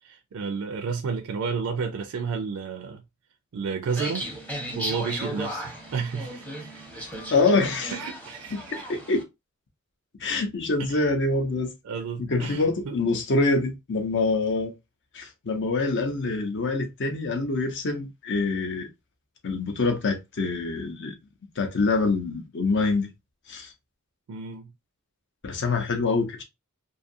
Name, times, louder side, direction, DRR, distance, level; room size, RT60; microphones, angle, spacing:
voice 1, 0.0-3.0 3.5-4.3 4.7-7.1 7.9-8.7 10.8-11.1 11.8-13.0 24.3-24.7, right 5 dB, 65° right, 0.4 m, -32 dB
sound 1, 3.9-9.2, equal, 5° left, 0.7 m, -36 dB
voice 2, 7.3-7.9 8.5-8.6 8.9-9.2 10.2-11.7 12.2-14.7 15.1-18.9 19.4-21.1 21.6-23.1 23.5-23.7 25.4-26.4, left 3 dB, 55° left, 0.7 m, -25 dB
2.6 x 2.4 x 2.5 m
head